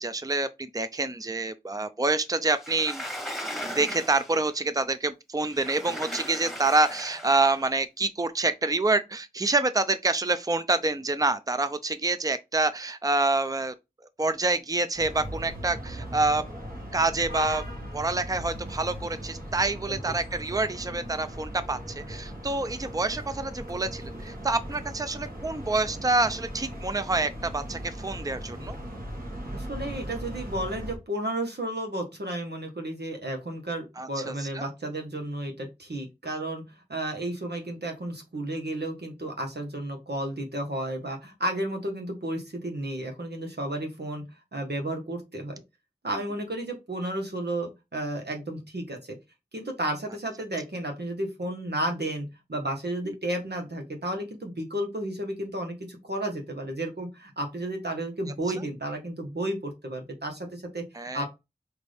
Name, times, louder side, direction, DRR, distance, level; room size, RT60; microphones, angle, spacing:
voice 1, 0.0-3.0 3.7-13.7 14.2-16.4 16.9-17.6 17.9-28.8 34.0-34.7 46.1-46.2 53.1-53.2 60.9-61.3, right 3 dB, 20° right, 0.5 m, -27 dB
Sliding door, 2.6-4.5 5.4-7.6, equal, ahead, 1.2 m, -37 dB
sound 1, 14.9-31.0, equal, 60° right, 1.6 m, -38 dB
voice 2, 29.5-36.6 36.9-44.2 44.5-45.6 46.0-49.2 49.5-61.3, right 1 dB, 90° right, 1.3 m, -32 dB
5.9 x 2.7 x 3.4 m
wide cardioid pair, 40°, 17 cm